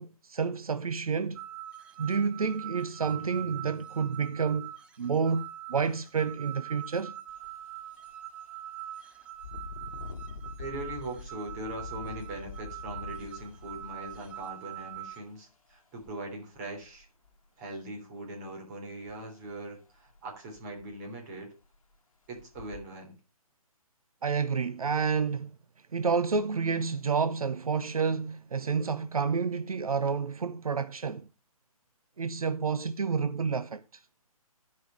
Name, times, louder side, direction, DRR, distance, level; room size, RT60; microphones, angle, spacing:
voice 1, 0.0-1.4 2.0-4.7 5.0-7.1 24.2-25.5 25.9-31.3 32.2-34.0, right 5 dB, 75° right, 0.6 m, -29 dB
sound 1, 1.4-15.2, right 13 dB, 5° right, 0.4 m, -43 dB
Engine, 7.3-7.5 8.0-8.1 9.3-15.1 16.0-16.1 16.6-17.3 19.1-19.2 19.6-19.7 20.1-20.2 20.6-21.1 21.6-21.7 22.3-22.8, left 4 dB, 65° left, 1.2 m, -44 dB
voice 2, 10.6-17.1 17.6-21.5 22.3-23.1, right 1 dB, 30° right, 3.5 m, -41 dB
12.5 x 5.4 x 5.1 m
figure-of-eight pair, 135°, 19 cm